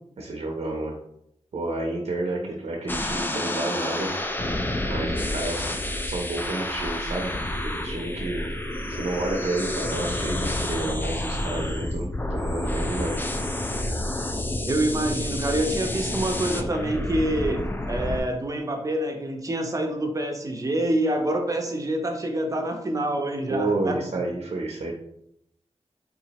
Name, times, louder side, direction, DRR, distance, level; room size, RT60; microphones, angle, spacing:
voice 1, 0.2-1.0 1.5-4.1 4.9-5.7 6.0-7.3 7.6-8.4 8.9-13.3 23.5-24.9, right 2 dB, 70° right, 0 dB, 0.6 m, -30 dB
sound 1, 2.9-18.2, left 1 dB, 20° left, 0.3 m, -29 dB
voice 2, 14.6-24.2, right 1 dB, 30° right, 3 dB, 0.6 m, -27 dB
3.6 x 2.9 x 2.9 m, 0.76 s
wide cardioid pair, 115°, 11 cm